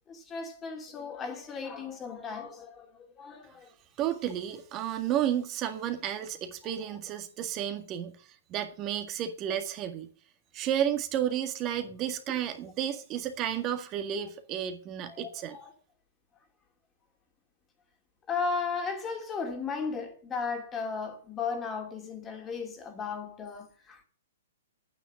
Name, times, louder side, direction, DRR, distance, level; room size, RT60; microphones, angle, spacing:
voice 1, 0.1-2.9 3.2-3.7 15.2-15.7 18.3-24.0, left 5 dB, 20° left, 2.7 m, -35 dB
voice 2, 4.0-8.2 8.5-10.1 10.5-15.6, right 10 dB, 30° right, 1.8 m, -32 dB
10.0 x 9.3 x 6.3 m
hypercardioid pair, 125°, 0 cm